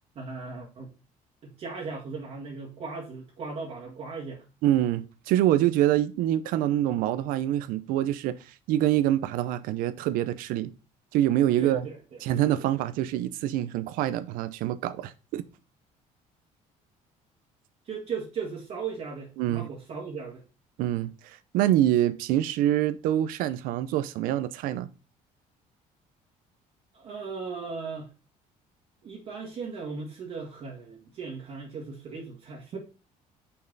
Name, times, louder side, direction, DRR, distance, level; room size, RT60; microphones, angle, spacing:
voice 1, 0.1-0.9 1.4-4.4 11.6-12.2 12.6-12.7 17.8-20.4 26.9-28.1 29.0-32.8, right 5 dB, 50° right, 1.7 m, -37 dB
voice 2, 4.6-8.4 8.7-10.7 11.1-11.8 12.2-15.4 19.4-19.7 20.8-24.9, right 12 dB, 90° right, 0.7 m, -25 dB
6.7 x 5.6 x 4.0 m
cardioid pair, 145°, 14 cm